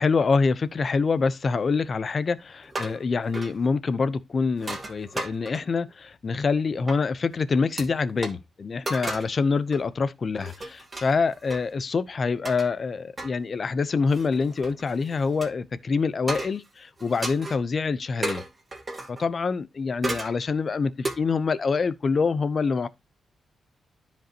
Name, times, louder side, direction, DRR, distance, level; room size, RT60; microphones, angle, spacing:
voice 1, 0.0-18.4 19.1-22.9, left 4 dB, 40° left, 0.8 m, -26 dB
sound 1, 2.6-3.0 3.3-3.6 4.6-5.8 6.9-7.0 7.8-7.9 8.2-8.3 8.9-9.4 9.7-9.9 10.3-11.6 12.4-12.7 13.2-13.3 14.1-15.5 16.3-16.7 17.0-17.6 18.2-19.3 20.0-20.4 21.0-21.2, right 2 dB, 25° right, 2.6 m, -34 dB
13.0 x 5.3 x 3.0 m
wide cardioid pair, 120°, 0 cm